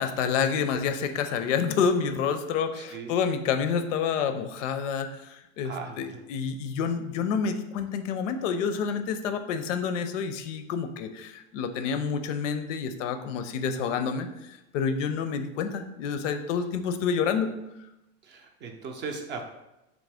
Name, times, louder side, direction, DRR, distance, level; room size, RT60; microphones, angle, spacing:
voice 1, 0.0-17.5, left 6 dB, 90° left, 8 dB, 0.5 m, -28 dB
voice 2, 2.8-3.2 5.6-6.2 18.2-19.4, right 4 dB, 30° right, 4 dB, 0.4 m, -38 dB
3.1 x 2.6 x 3.3 m, 0.92 s
supercardioid pair, 125°, 36 cm